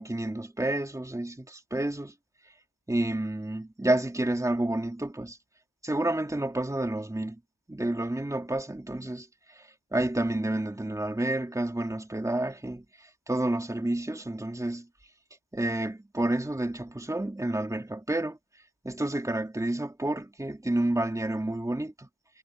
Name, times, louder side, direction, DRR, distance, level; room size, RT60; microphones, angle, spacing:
voice 1, 0.0-2.1 2.9-5.4 5.8-7.4 7.7-14.9 15.5-18.4 18.8-22.1, right 1 dB, 10° right, 2.6 m, -30 dB
wide cardioid pair, 130°, 33 cm